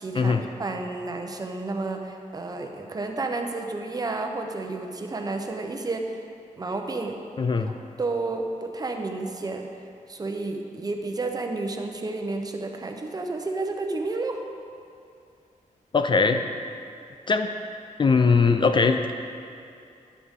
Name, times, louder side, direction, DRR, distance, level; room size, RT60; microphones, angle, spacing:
voice 1, 0.0-6.2 6.6-7.2 8.0-9.7 10.1-14.4, right 3 dB, 25° right, 3 dB, 0.8 m, -31 dB
voice 2, 7.4-7.7 15.9-16.4 17.3-17.5 18.0-19.1, left 4 dB, 35° left, 7 dB, 0.4 m, -20 dB
13.5 x 10.5 x 3.7 m, 2.5 s
wide cardioid pair, 175°, 14 cm